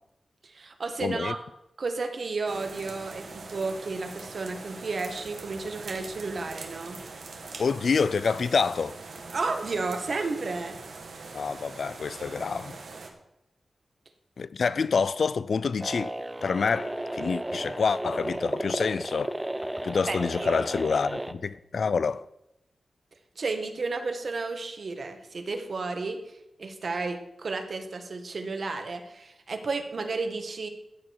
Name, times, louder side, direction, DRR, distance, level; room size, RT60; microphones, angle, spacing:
voice 1, 0.4-1.4 1.8-7.0 9.3-10.8 20.1-20.9 23.4-26.2 26.6-30.7, right 3 dB, 55° right, 1.5 m, -32 dB
voice 2, 1.0-1.3 7.6-9.0 11.3-12.8 14.4-16.2 16.4-19.4 19.8-22.2, left 5 dB, 65° left, 0.4 m, -27 dB
sound 1, 2.5-13.1, right 3 dB, 90° right, 1.8 m, -42 dB
sound 2, 15.8-21.3, right 1 dB, 10° right, 0.6 m, -33 dB
14.5 x 8.6 x 4.7 m
wide cardioid pair, 160°, 0 cm